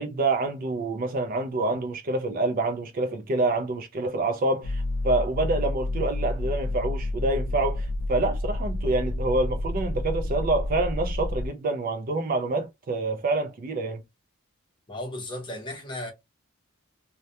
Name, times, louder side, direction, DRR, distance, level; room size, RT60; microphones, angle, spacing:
voice 1, 0.0-14.0, right 2 dB, 40° right, 0.4 m, -27 dB
sound 1, 4.6-11.5, left 1 dB, 85° left, 0.4 m, -29 dB
voice 2, 14.9-16.1, left 1 dB, 20° left, 0.7 m, -35 dB
2.2 x 2.1 x 2.7 m
head